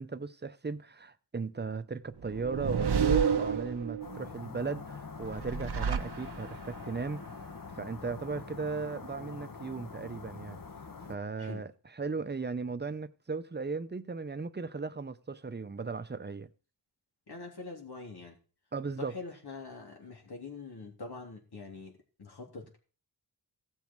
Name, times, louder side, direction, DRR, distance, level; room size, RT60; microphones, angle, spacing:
voice 1, 0.0-7.2 7.7-10.6 11.1-16.5 18.7-19.2, right 4 dB, 25° right, 0.8 m, -37 dB
sound 1, 2.2-4.2 5.2-6.7, right 7 dB, 85° right, 1.0 m, -30 dB
sound 2, 4.0-11.2, left 4 dB, 60° left, 1.3 m, -44 dB
voice 2, 17.3-18.4 19.0-21.9 22.2-22.8, left 3 dB, 80° left, 3.5 m, -44 dB
16.0 x 7.3 x 4.7 m
wide cardioid pair, 110°, 38 cm